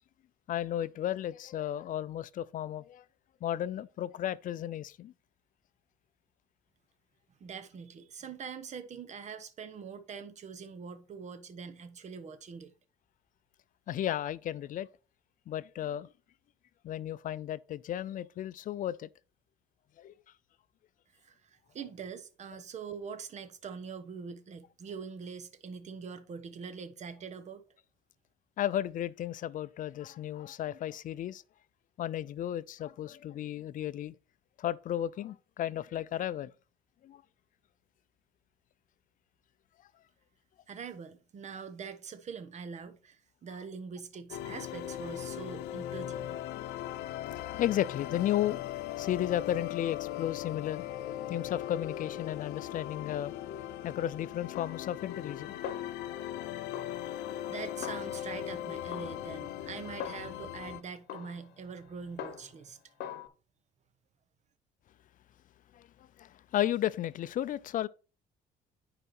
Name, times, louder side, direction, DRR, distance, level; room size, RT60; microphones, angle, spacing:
voice 1, 0.5-3.0 3.4-5.1 13.9-14.9 15.5-16.1 16.8-19.1 20.0-20.1 28.6-31.4 32.0-34.2 34.6-36.5 37.0-37.2 47.6-48.6 49.0-50.8 51.3-53.3 53.8-55.6 65.7-67.9, left 12 dB, 50° left, 0.5 m, -34 dB
voice 2, 7.4-12.7 21.2-27.6 40.7-46.4 57.5-62.8, right 6 dB, 45° right, 1.2 m, -43 dB
sound 1, 44.3-60.8, left 12 dB, 90° left, 0.7 m, -39 dB
Snare drum, 54.6-55.4 55.6-56.4 56.7-58.5 58.9-60.6 61.1-62.7 63.0-63.3, left 9 dB, 75° left, 1.1 m, -44 dB
9.9 x 4.9 x 4.3 m
cardioid pair, 110°, 17 cm